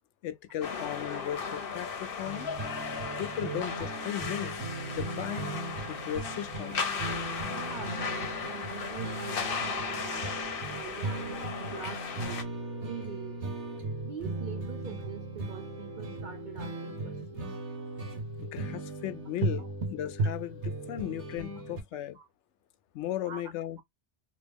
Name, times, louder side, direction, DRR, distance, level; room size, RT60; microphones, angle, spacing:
voice 1, 0.2-2.5 3.2-4.5 4.9-5.5 5.9-6.9 18.4-22.2 22.9-23.8, left 12 dB, 90° left, 0.9 m, -36 dB
sound 1, 0.6-12.4, left 5 dB, 55° left, 0.9 m, -36 dB
voice 2, 0.8-1.2 1.5-1.6 2.4-2.5 7.5-10.4 10.7-12.4 12.8-13.5 14.0-17.6 19.6-19.7 22.1-22.3 23.3-23.4, right 8 dB, 60° right, 0.5 m, -44 dB
sound 2, 2.2-21.8, right 3 dB, 85° right, 1.2 m, -37 dB
sound 3, 3.4-21.8, left 7 dB, 25° left, 1.1 m, -48 dB
3.0 x 2.6 x 3.4 m
omnidirectional pair, 1.2 m